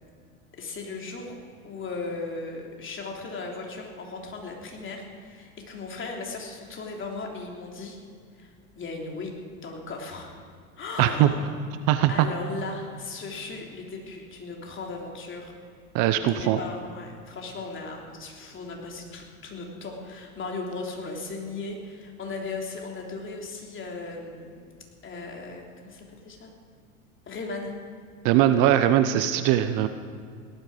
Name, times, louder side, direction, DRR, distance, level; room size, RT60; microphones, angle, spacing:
voice 1, 0.6-1.4 1.6-8.0 8.4-9.3 9.6-10.3 10.8-11.6 12.1-15.5 16.3-24.6 25.0-26.5 27.3-27.8 29.1-29.3, left 3 dB, 30° left, 0 dB, 3.2 m, -37 dB
voice 2, 11.0-11.3 11.9-12.3 15.9-16.6 28.2-29.9, right 12 dB, 45° right, 10 dB, 0.8 m, -20 dB
17.5 x 12.0 x 5.1 m, 2.2 s
hypercardioid pair, 90°, 43 cm